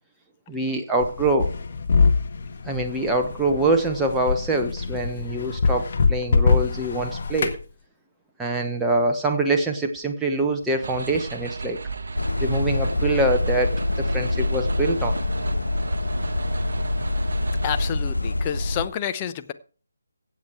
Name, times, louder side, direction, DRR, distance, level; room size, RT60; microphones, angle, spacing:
voice 1, 0.5-1.5 2.6-7.6 8.4-11.8 12.4-15.1, right 2 dB, 5° right, 1.1 m, -24 dB
sound 1, 1.0-7.6, left 4 dB, 45° left, 1.7 m, -24 dB
sound 2, 10.8-17.9, right 4 dB, 55° right, 0.9 m, -35 dB
sound 3, 12.2-18.9, left 2 dB, 85° left, 1.4 m, -25 dB
voice 2, 17.6-19.5, left 9 dB, 25° left, 0.8 m, -29 dB
15.5 x 7.8 x 4.6 m
figure-of-eight pair, 150°, 0 cm